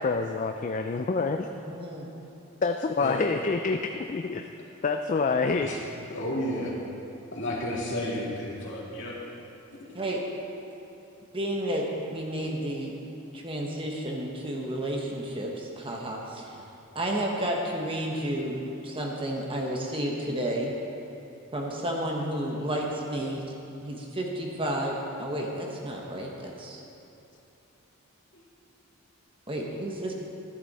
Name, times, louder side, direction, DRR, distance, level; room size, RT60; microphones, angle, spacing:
voice 1, 0.0-1.5 2.6-4.4 4.8-5.7, left 4 dB, 35° left, 6 dB, 0.3 m, -27 dB
voice 2, 1.6-2.1 10.0-10.2 11.3-12.9 13.3-16.6 16.9-20.8 21.5-23.4 23.8-26.8 29.5-30.1, right 1 dB, 25° right, -1 dB, 1.1 m, -31 dB
voice 3, 6.1-6.7 7.4-9.2, left 1 dB, 55° left, -5 dB, 2.6 m, -32 dB
13.0 x 11.0 x 4.1 m, 2.9 s
head